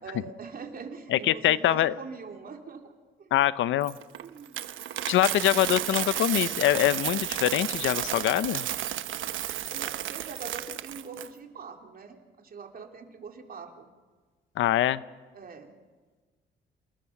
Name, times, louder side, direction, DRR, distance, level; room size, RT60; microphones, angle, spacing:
voice 1, 0.0-2.9 3.2-3.3 4.2-4.6 5.2-5.4 9.7-13.9 15.3-15.7, right 5 dB, 50° right, 3 dB, 3.2 m, -43 dB
voice 2, 1.1-1.9 3.3-3.9 5.1-8.6 14.6-15.0, left 13 dB, 75° left, 16 dB, 0.8 m, -24 dB
Coin (dropping), 3.8-11.3, right 12 dB, 80° right, 1.1 m, -32 dB
29.0 x 20.5 x 6.0 m, 1.4 s
cardioid pair, 90°, 20 cm